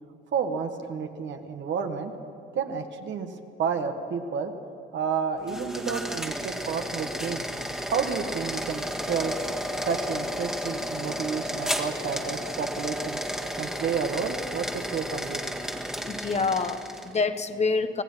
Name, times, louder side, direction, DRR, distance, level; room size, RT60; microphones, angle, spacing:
voice 1, 0.3-2.1 2.5-3.3 3.6-4.5 4.9-7.5 7.8-9.3 9.8-13.2 13.6-15.4, right 6 dB, 70° right, 5 dB, 1.7 m, -30 dB
sound 1, 5.4-17.2, equal, 5° right, 1.8 m, -33 dB
voice 2, 16.0-18.0, left 4 dB, 35° left, 9 dB, 1.2 m, -27 dB
25.5 x 18.0 x 5.8 m, 2.7 s
cardioid pair, 90°, 20 cm